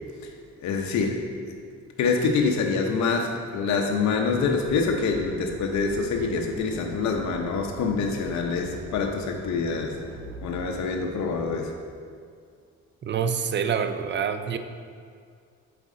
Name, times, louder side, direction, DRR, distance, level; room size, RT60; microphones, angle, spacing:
voice 1, 0.6-1.2 2.0-10.0 10.4-11.7, left 4 dB, 65° left, 2 dB, 0.8 m, -26 dB
sound 1, 4.1-11.5, right 2 dB, 70° right, 1.1 m, -42 dB
voice 2, 13.0-14.6, right 7 dB, 40° right, 10 dB, 0.4 m, -26 dB
8.0 x 4.2 x 3.7 m, 2.2 s
cardioid pair, 90°, 30 cm